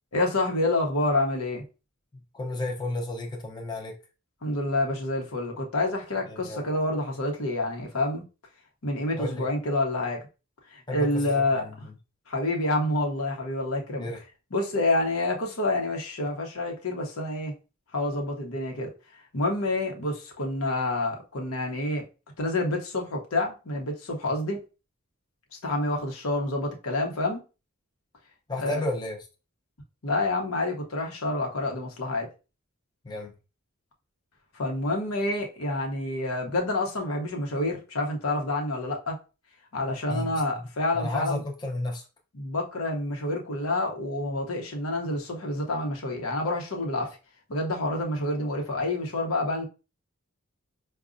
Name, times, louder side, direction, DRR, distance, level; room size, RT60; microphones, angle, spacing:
voice 1, 0.1-1.6 4.4-8.2 8.8-10.2 10.7-11.7 12.3-14.1 14.5-17.5 17.9-18.9 19.3-22.0 22.4-24.6 25.6-27.4 28.6-28.8 30.0-32.3 34.5-39.2 39.7-41.4 42.3-47.2 47.5-49.7, left 2 dB, 85° left, 0.9 m, -28 dB
voice 2, 2.3-3.9 6.3-6.7 9.2-9.5 10.9-11.9 14.0-14.2 28.5-29.2 33.0-33.3 40.1-40.6 40.9-42.0, left 1 dB, 20° left, 0.6 m, -32 dB
4.8 x 2.3 x 2.5 m
head